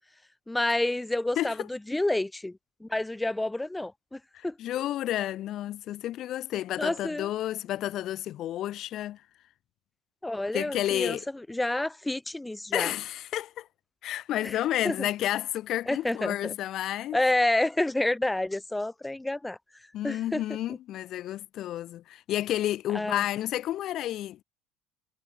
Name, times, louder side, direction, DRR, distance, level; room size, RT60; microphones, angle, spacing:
voice 1, 0.5-2.5 2.8-4.5 6.8-7.3 10.2-11.2 11.5-12.9 14.4-14.6 14.8-15.1 15.9-16.5 17.1-19.6 20.0-20.4 22.9-23.2, left 1 dB, 10° left, 4.1 m, -29 dB
voice 2, 1.4-1.7 4.3-9.2 10.5-11.2 12.7-13.7 14.0-17.2 19.9-24.4, left 13 dB, 55° left, 7.5 m, -31 dB
supercardioid pair, 90°, 0 cm